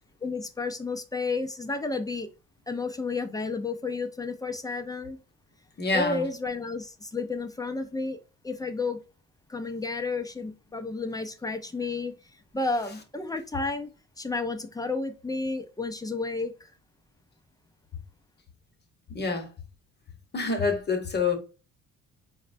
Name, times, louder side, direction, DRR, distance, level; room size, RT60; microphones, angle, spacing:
voice 1, 0.2-2.3 2.7-5.2 5.9-8.2 8.4-9.0 9.5-12.1 12.5-13.9 14.2-16.7, left 3 dB, 15° left, 0.4 m, -31 dB
voice 2, 5.8-6.3 19.1-19.5 20.3-21.4, left 4 dB, 35° left, 0.9 m, -26 dB
4.1 x 2.1 x 2.5 m
cardioid pair, 90°, 30 cm